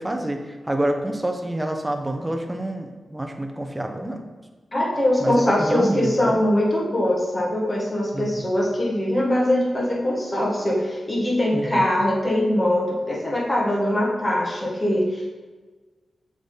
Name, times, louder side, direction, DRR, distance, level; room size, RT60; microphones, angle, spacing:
voice 1, 0.0-4.2 5.2-6.4 8.1-8.4 11.5-11.9, right 1 dB, 15° right, 4 dB, 0.8 m, -27 dB
voice 2, 4.7-15.3, left 1 dB, 25° left, -4 dB, 1.8 m, -22 dB
6.9 x 3.8 x 4.0 m, 1.3 s
cardioid pair, 60°, 0 cm